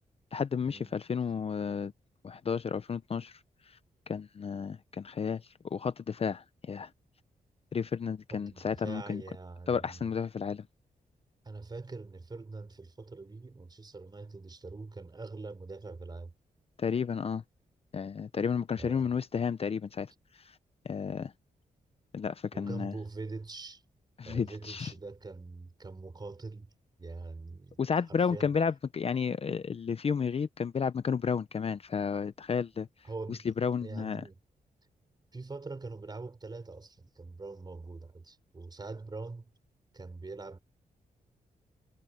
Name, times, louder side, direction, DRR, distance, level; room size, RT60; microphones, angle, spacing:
voice 1, 0.3-1.9 2.2-3.4 4.1-5.4 5.7-6.9 7.7-9.2 9.7-10.6 16.8-17.4 17.9-20.1 20.8-21.3 22.1-22.9 24.2-24.9 27.8-32.9 33.3-34.2, left 6 dB, 40° left, 0.6 m, -32 dB
voice 2, 8.3-10.1 11.4-16.3 18.8-19.1 22.5-23.8 24.2-26.7 27.0-27.8 28.1-28.5 33.0-33.5 33.8-34.4 35.3-39.5 39.9-40.6, right 3 dB, 30° right, 3.9 m, -43 dB
wide cardioid pair, 115°, 15 cm